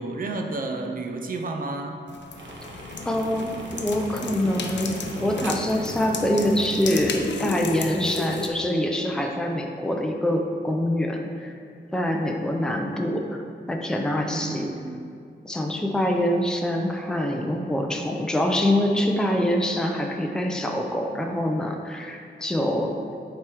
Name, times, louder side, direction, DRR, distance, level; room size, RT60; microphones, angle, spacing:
voice 1, 0.0-2.0 14.2-15.1, right 2 dB, 50° right, 3 dB, 0.6 m, -31 dB
sound 1, 2.1-8.5, left 4 dB, 75° left, 0.6 m, -33 dB
sound 2, 2.3-6.6, right 1 dB, 85° right, 0.9 m, -42 dB
voice 2, 3.1-11.5 11.9-13.4 13.7-14.7 15.4-23.0, left 1 dB, 5° left, 2 dB, 0.5 m, -25 dB
8.9 x 3.3 x 4.5 m, 2.3 s
wide cardioid pair, 135°, 19 cm